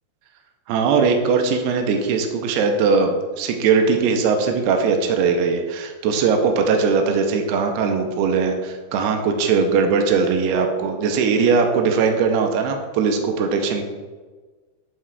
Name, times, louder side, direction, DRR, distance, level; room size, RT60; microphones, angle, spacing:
voice 1, 0.7-13.8, right 5 dB, 80° right, 4 dB, 2.5 m, -20 dB
11.0 x 5.7 x 2.4 m, 1.4 s
omnidirectional pair, 4.9 m